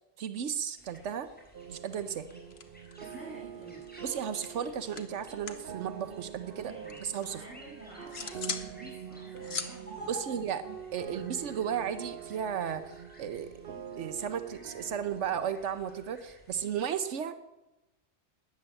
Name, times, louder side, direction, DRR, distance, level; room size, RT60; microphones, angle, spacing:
voice 1, 0.2-1.3 1.7-2.3 4.0-6.7 7.0-7.4 10.1-10.6 10.9-13.5 14.0-17.3, right 8 dB, 85° right, 10 dB, 1.1 m, -34 dB
sound 1, 0.8-16.7, right 1 dB, 5° left, 4.7 m, -53 dB
sound 2, 1.5-1.7 1.9-3.2 3.4-5.7 6.0-7.3 7.7-8.7 9.0-11.2, left 5 dB, 60° left, 1.4 m, -42 dB
sound 3, 1.5-15.5, right 8 dB, 55° right, 1.0 m, -45 dB
voice 2, 3.0-3.9 6.6-10.7, right 2 dB, 10° right, -5 dB, 6.3 m, -50 dB
13.5 x 10.5 x 8.8 m, 1.0 s
omnidirectional pair, 1.2 m